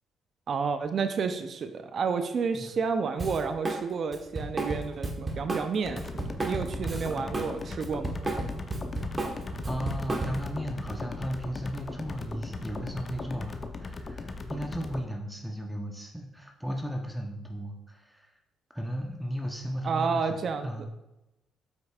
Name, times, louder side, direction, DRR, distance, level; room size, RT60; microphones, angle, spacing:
voice 1, 0.5-8.2 19.8-20.9, right 5 dB, 55° right, 8 dB, 0.5 m, -30 dB
Drum kit, 3.2-3.8 4.1-7.5 7.8-10.6, right 2 dB, 30° right, 1.1 m, -32 dB
sound 1, 5.8-15.0, left 3 dB, 35° left, 0.6 m, -38 dB
voice 2, 7.1-7.5 9.6-18.3 18.7-20.9, equal, 5° right, 1 dB, 0.8 m, -35 dB
7.9 x 5.3 x 2.4 m, 0.93 s
cardioid pair, 90°, 0 cm